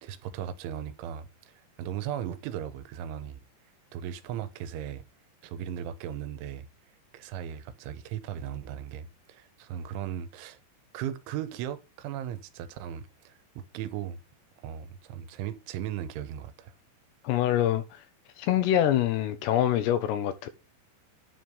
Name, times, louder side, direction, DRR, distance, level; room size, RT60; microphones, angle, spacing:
voice 1, 0.0-3.4 3.9-5.0 5.4-6.7 7.1-10.6 10.9-14.2 14.6-16.7, right 10 dB, 90° right, 3.3 m, -37 dB
voice 2, 17.2-18.0 18.4-20.5, left 11 dB, 80° left, 2.6 m, -25 dB
10.5 x 5.3 x 6.3 m
omnidirectional pair, 5.5 m